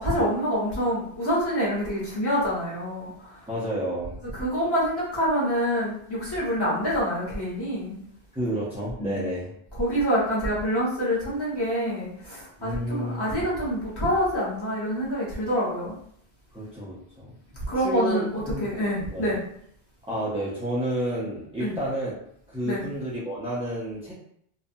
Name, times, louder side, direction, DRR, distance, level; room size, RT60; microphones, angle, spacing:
voice 1, 0.0-3.1 4.3-7.9 9.0-9.2 9.8-15.9 17.7-19.4 21.6-21.7 22.6-22.8, equal, 25° left, -9 dB, 1.2 m, -26 dB
voice 2, 3.5-4.2 8.3-9.5 12.6-13.4 16.5-17.3 17.8-19.3 20.1-22.1 22.5-24.1, right 1 dB, 10° right, -9 dB, 0.4 m, -30 dB
2.6 x 2.2 x 2.6 m, 0.68 s
omnidirectional pair, 1.1 m